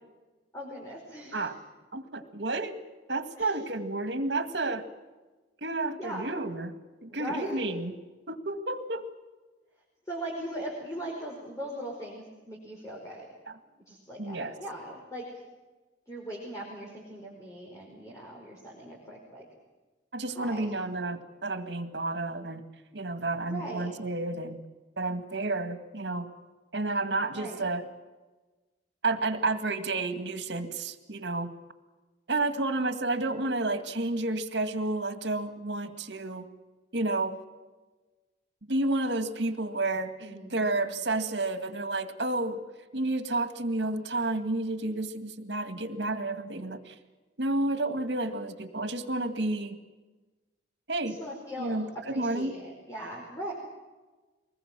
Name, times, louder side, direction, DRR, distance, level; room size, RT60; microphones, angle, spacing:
voice 1, 0.5-1.5 3.4-3.5 6.0-6.3 7.1-7.6 10.1-13.3 13.9-15.4 16.1-19.4 20.3-20.7 23.5-23.9 27.3-27.6 40.2-40.6 51.0-53.5, right 1 dB, 15° left, -2 dB, 5.1 m, -39 dB
voice 2, 1.9-2.7 3.1-4.8 5.6-6.7 7.0-7.9 8.3-9.1 14.2-14.5 20.1-22.6 22.9-24.6 25.0-26.3 26.7-27.8 29.0-31.5 32.3-36.5 36.9-37.4 38.7-42.6 42.9-47.0 47.4-49.8 50.9-51.2 51.6-52.5, right 2 dB, 70° right, 8 dB, 2.0 m, -31 dB
24.5 x 20.0 x 7.6 m, 1.2 s
head